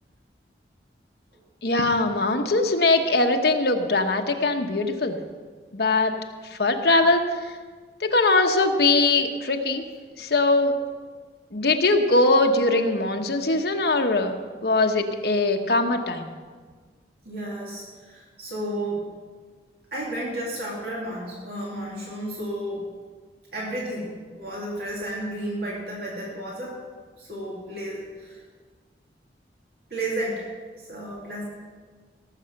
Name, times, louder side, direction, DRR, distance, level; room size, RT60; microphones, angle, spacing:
voice 1, 1.6-5.2 5.7-6.1 6.5-7.4 8.0-9.8 10.2-10.7 11.5-14.3 14.6-16.3, left 2 dB, 65° left, 4 dB, 1.1 m, -21 dB
voice 2, 17.2-19.0 19.9-22.9 23.5-26.8 27.2-28.4 29.9-30.4 30.8-31.5, right 1 dB, 60° right, -4 dB, 2.5 m, -32 dB
17.5 x 7.6 x 5.9 m, 1.5 s
head